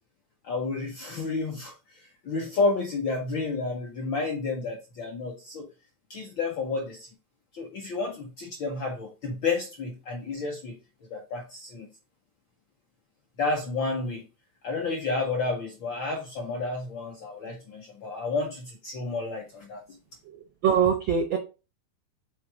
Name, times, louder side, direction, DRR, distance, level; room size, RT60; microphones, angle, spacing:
voice 1, 0.4-5.7 6.1-7.1 7.5-10.8 11.1-11.9 13.4-14.2 14.6-19.8, left 3 dB, 65° left, 1 dB, 1.2 m, -31 dB
voice 2, 20.2-21.4, right 7 dB, 80° right, 4 dB, 1.0 m, -24 dB
5.7 x 3.7 x 4.7 m, 0.31 s
omnidirectional pair, 3.3 m